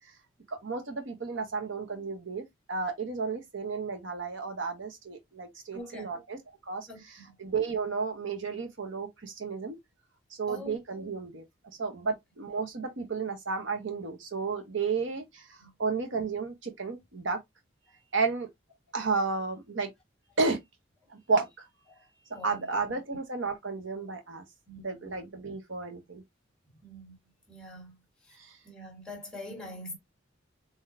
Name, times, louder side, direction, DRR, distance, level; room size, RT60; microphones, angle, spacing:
voice 1, 0.5-9.8 10.4-11.4 11.8-15.4 15.8-17.4 18.1-18.5 18.9-19.9 20.4-20.6 21.1-21.5 22.3-24.4 24.8-26.2 28.4-28.5, right 4 dB, 75° right, 1.1 m, -32 dB
voice 2, 5.7-6.1 6.9-7.3 10.5-10.8 15.6-15.7 21.9-22.0 22.3-22.7 24.7-24.8 26.8-27.2 27.5-28.0 28.6-30.0, left 1 dB, 5° left, 1.5 m, -43 dB
4.0 x 3.0 x 2.6 m
head